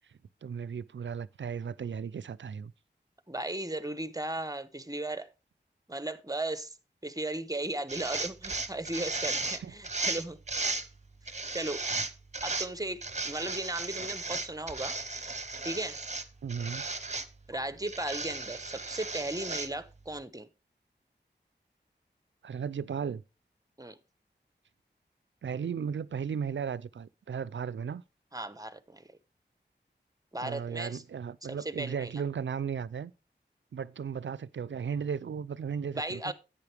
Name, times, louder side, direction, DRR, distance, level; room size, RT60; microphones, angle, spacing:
voice 1, 0.4-2.7 9.6-9.7 16.4-16.8 22.4-23.2 25.4-28.0 30.4-33.1 33.7-36.3, right 7 dB, 80° right, 0.4 m, -35 dB
voice 2, 3.3-5.3 5.9-6.7 7.0-10.4 11.2-11.8 12.4-15.0 15.6-16.0 17.5-20.5 23.8-24.0 28.3-29.1 30.3-31.0 31.5-32.2 35.9-36.3, right 2 dB, 20° right, 1.0 m, -36 dB
sound 1, 7.9-10.9 11.3-12.7 13.0-16.2 16.5-17.3 17.9-19.7, right 3 dB, 40° right, 0.9 m, -35 dB
10.5 x 8.8 x 3.4 m
wide cardioid pair, 45°, 19 cm